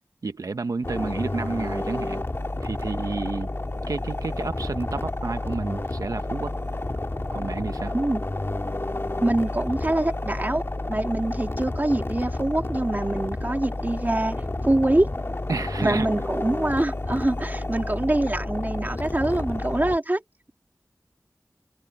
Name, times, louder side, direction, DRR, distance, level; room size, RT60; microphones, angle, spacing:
voice 1, 0.2-2.2 2.6-3.5 3.9-6.5 7.3-7.9 15.5-16.1, right 4 dB, 90° right, 0.8 m, -30 dB
sound 1, 0.8-20.0, left 2 dB, 45° left, 2.4 m, -30 dB
voice 2, 7.9-8.2 9.2-10.6 10.9-15.1 15.8-20.2, right 1 dB, 35° right, 2.6 m, -25 dB
wide cardioid pair, 45°, 6 cm